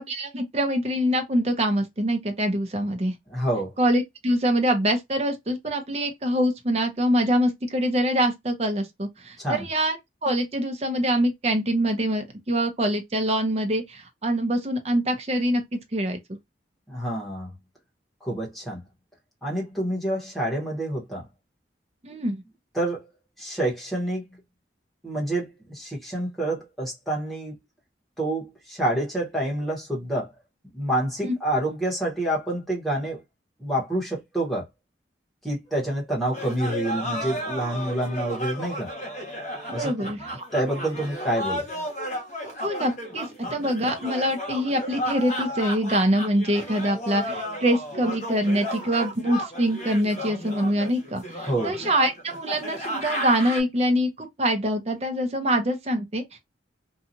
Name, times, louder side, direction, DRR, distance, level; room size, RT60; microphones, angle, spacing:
voice 1, 0.0-3.1 3.8-16.2 22.0-22.4 39.7-40.5 42.6-56.4, equal, 35° right, 0.7 m, -24 dB
voice 2, 3.3-3.7 9.4-9.6 16.9-17.5 18.2-18.8 19.4-21.3 22.7-23.1 23.4-24.3 25.0-27.6 28.2-30.3 30.7-33.2 33.6-34.7 35.4-38.9 39.7-41.6 51.4-51.8, right 1 dB, ahead, 1.1 m, -28 dB
sound 1, 36.3-53.6, equal, 40° left, 1.3 m, -33 dB
2.8 x 2.3 x 2.6 m
head